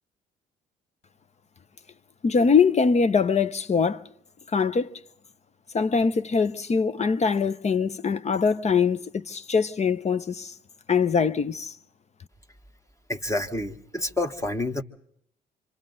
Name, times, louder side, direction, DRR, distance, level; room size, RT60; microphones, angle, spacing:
voice 1, 2.2-4.1 4.5-5.0 5.7-10.5 10.9-11.7, left 5 dB, 35° left, 0.9 m, -23 dB
voice 2, 13.1-14.8, left 2 dB, 15° left, 1.5 m, -28 dB
26.5 x 25.5 x 3.9 m
supercardioid pair, 60°, 19 cm